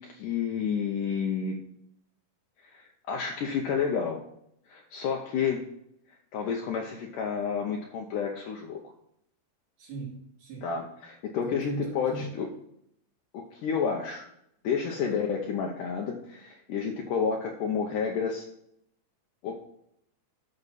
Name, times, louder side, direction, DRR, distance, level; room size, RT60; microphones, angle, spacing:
voice 1, 0.0-1.6 2.6-4.2 4.7-5.6 6.3-8.8 10.6-12.5 13.3-14.2 14.6-18.5 19.4-19.6, left 6 dB, 75° left, 1 dB, 2.2 m, -30 dB
voice 2, 9.8-10.7 11.4-12.3 15.0-15.2, right 2 dB, 65° right, -4 dB, 4.2 m, -38 dB
12.0 x 6.1 x 4.1 m, 0.75 s
omnidirectional pair, 4.1 m